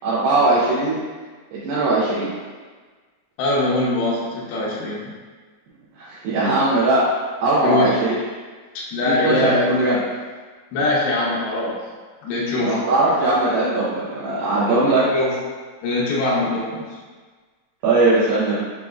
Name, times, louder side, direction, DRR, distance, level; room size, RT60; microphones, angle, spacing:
voice 1, 0.0-1.0 1.5-2.3 6.0-7.0 7.4-8.1 9.0-10.0 12.6-15.0 17.8-18.6, right 2 dB, 80° right, -10 dB, 2.8 m, -19 dB
voice 2, 3.4-5.1 7.6-7.9 8.9-9.9 10.7-11.7 12.2-12.8 14.7-15.3 15.8-16.8, left 2 dB, 80° left, -6 dB, 2.8 m, -22 dB
7.3 x 2.8 x 2.4 m, 1.4 s
omnidirectional pair, 4.4 m